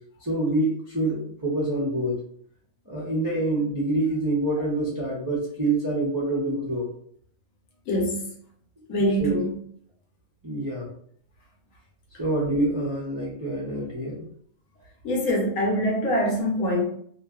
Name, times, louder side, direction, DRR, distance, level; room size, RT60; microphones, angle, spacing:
voice 1, 0.2-2.1 2.9-6.9 9.2-9.4 10.4-10.9 12.2-14.3, right 2 dB, 35° right, 0.3 m, -26 dB
voice 2, 7.9-8.3 8.9-9.6 15.0-16.8, equal, 70° left, 1.0 m, -24 dB
2.5 x 2.3 x 2.3 m
omnidirectional pair, 1.5 m